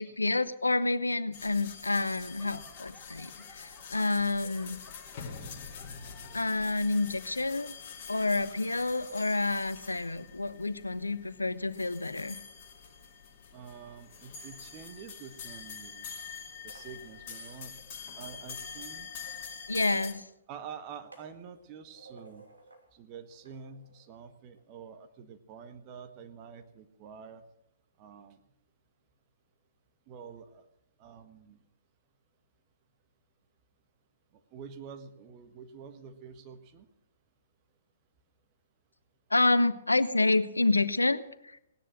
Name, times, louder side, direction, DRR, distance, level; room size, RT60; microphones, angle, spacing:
voice 1, 0.0-4.8 6.3-7.7 8.1-12.4 19.7-20.2 39.3-41.6, left 2 dB, 80° left, 15 dB, 0.8 m, -28 dB
sound 1, 1.3-20.1, left 6 dB, 40° left, 2.3 m, -45 dB
Laughter / Clapping / Crowd, 1.9-6.7 7.0-7.5 8.1-8.2, left 3 dB, 10° left, 1.9 m, -56 dB
voice 2, 13.5-16.1 16.6-17.7 18.2-19.1 20.5-22.5 22.9-27.4 28.0-28.5 30.1-30.6 31.0-31.6 34.3-36.9, right 6 dB, 30° right, 9 dB, 1.4 m, -47 dB
sound 2, 16.5-18.0 19.1-20.3 20.6-22.9 23.3-24.6, right 2 dB, 80° right, 2.9 m, -56 dB
18.0 x 10.0 x 6.3 m, 0.80 s
figure-of-eight pair, 120°, 0 cm